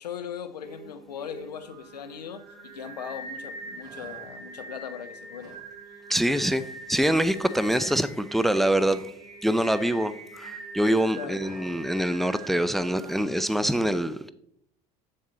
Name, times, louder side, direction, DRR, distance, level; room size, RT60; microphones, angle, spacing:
voice 1, 0.0-5.6 11.1-11.4, left 8 dB, 80° left, 0.6 m, -39 dB
Singing, 0.6-13.2, right 2 dB, 65° right, 2.0 m, -43 dB
sound 1, 3.7-4.6 4.9-5.7 6.0-6.2 6.5-9.3 9.5-10.6 10.9-13.4, right 1 dB, 20° right, 3.8 m, -52 dB
voice 2, 6.1-9.0 9.4-14.3, right 1 dB, ahead, 0.4 m, -25 dB
7.7 x 7.3 x 4.1 m
figure-of-eight pair, 65°, 20 cm